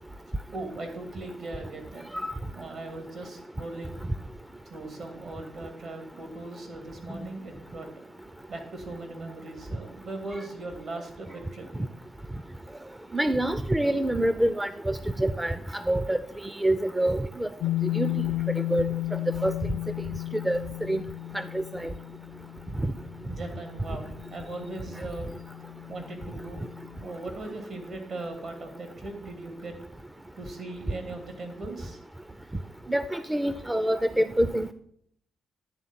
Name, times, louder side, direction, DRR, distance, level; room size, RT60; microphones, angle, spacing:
voice 1, 0.5-2.0 2.5-4.1 4.7-7.9 8.5-11.7 23.3-25.3 25.9-26.7 27.0-29.7 30.4-32.0, right 2 dB, 65° right, 5 dB, 2.5 m, -39 dB
voice 2, 13.1-15.6 15.9-16.2 16.6-17.5 17.9-18.1 18.7-18.8 19.4-19.6 20.5-20.6 20.9-21.0 21.5-21.9 32.9-34.7, right 1 dB, 15° right, 12 dB, 0.5 m, -26 dB
sound 1, 17.6-27.1, left 17 dB, 70° left, 0.4 m, -34 dB
10.5 x 3.7 x 7.3 m, 0.66 s
supercardioid pair, 65°, 0 cm